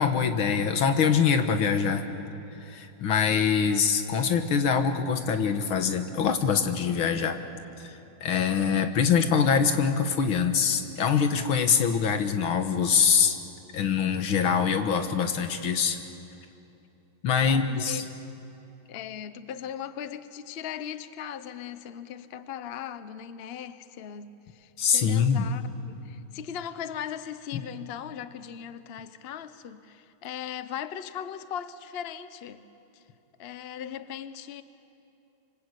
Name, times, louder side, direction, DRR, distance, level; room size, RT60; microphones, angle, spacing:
voice 1, 0.0-2.0 2.7-7.4 8.2-13.4 13.7-16.0 17.2-18.0 24.8-25.5 27.5-27.6, left 6 dB, 90° left, 2.2 m, -24 dB
voice 2, 17.4-18.0 18.9-25.6 25.9-32.7 32.9-33.0 33.4-34.6, left 9 dB, 50° left, 0.7 m, -38 dB
26.5 x 24.5 x 8.3 m
omnidirectional pair, 2.2 m